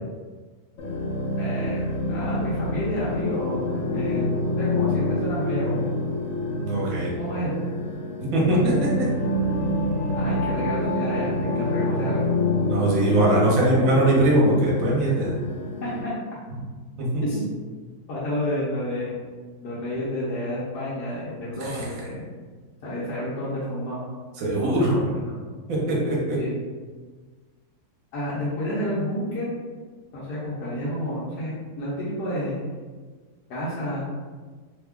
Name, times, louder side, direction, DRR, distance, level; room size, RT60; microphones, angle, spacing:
sound 1, 0.8-16.0, left 1 dB, 60° left, 0.8 m, -27 dB
voice 1, 1.4-5.9 7.2-7.7 10.1-12.3 14.6-14.7 15.8-16.1 17.2-17.4 18.1-19.1 19.6-22.2 22.8-24.0 24.6-25.4 26.4-26.5 28.1-29.5 30.1-32.5 33.5-34.0, left 1 dB, 80° left, -8 dB, 1.3 m, -30 dB
voice 2, 6.6-7.1 8.3-9.1 12.7-15.3 17.0-17.2 21.6-21.7 24.4-24.9 25.7-26.4, right 1 dB, 60° right, -4 dB, 1.3 m, -21 dB
3.3 x 2.3 x 3.5 m, 1.4 s
omnidirectional pair, 1.7 m